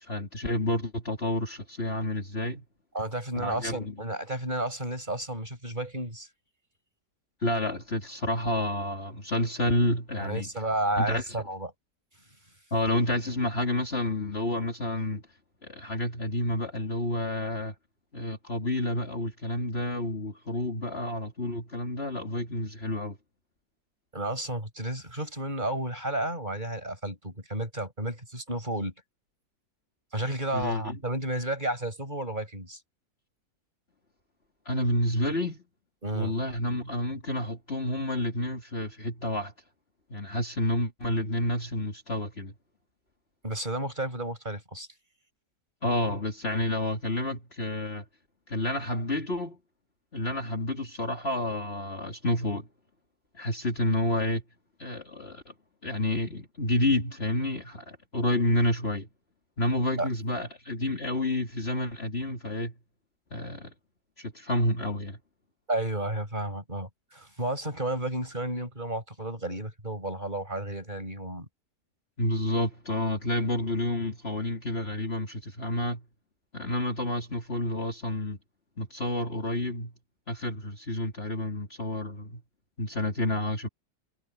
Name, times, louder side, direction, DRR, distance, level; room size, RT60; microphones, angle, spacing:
voice 1, 0.0-2.6 3.3-3.9 7.4-10.5 10.9-11.2 12.7-15.2 15.6-17.7 18.1-23.2 30.5-31.0 34.6-35.6 36.1-39.5 40.1-42.5 45.8-48.0 48.5-49.6 50.1-52.7 53.3-54.4 54.8-55.5 55.8-59.1 59.6-62.7 63.3-63.7 64.2-65.2 72.2-76.0 76.5-78.4 78.8-79.9 80.3-82.4 82.8-83.7, left 1 dB, 40° left, 3.1 m, -29 dB
voice 2, 2.9-6.3 10.2-11.7 24.1-28.9 30.1-32.8 36.0-36.3 43.4-44.9 60.0-60.1 65.7-71.5, right 1 dB, 25° right, 6.7 m, -32 dB
omnidirectional pair, 1.7 m